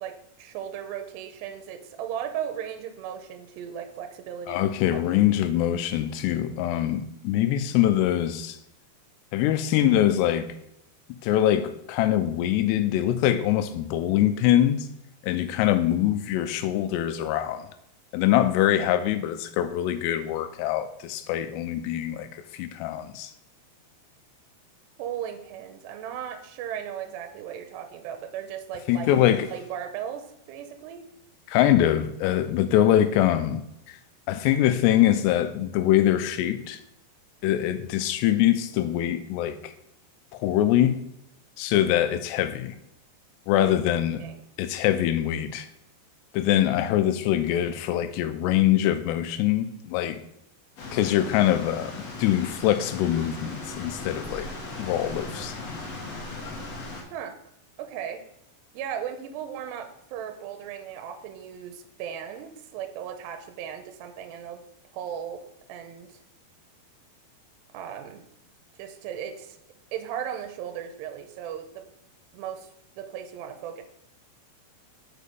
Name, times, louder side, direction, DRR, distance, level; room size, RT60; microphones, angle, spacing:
voice 1, 0.0-4.7 25.0-29.2 29.5-31.1 43.6-43.8 44.2-44.4 57.1-57.4 57.8-58.2 58.7-64.6 64.9-66.1 67.7-68.2 68.8-69.6 69.9-71.9 72.3-72.7 73.0-73.8, right 9 dB, 80° right, 2.7 m, -36 dB
voice 2, 4.5-8.6 9.3-10.5 11.2-14.9 15.2-17.7 18.1-23.3 28.9-29.5 31.5-34.0 34.3-36.8 37.4-39.6 40.3-41.0 41.6-42.7 43.5-44.2 44.6-45.7 46.3-50.2 50.9-54.5 54.8-55.6, left 12 dB, 80° left, 2.6 m, -23 dB
sound 1, 50.8-57.0, left 2 dB, 55° left, 1.9 m, -37 dB
6.5 x 5.4 x 5.3 m
omnidirectional pair, 5.1 m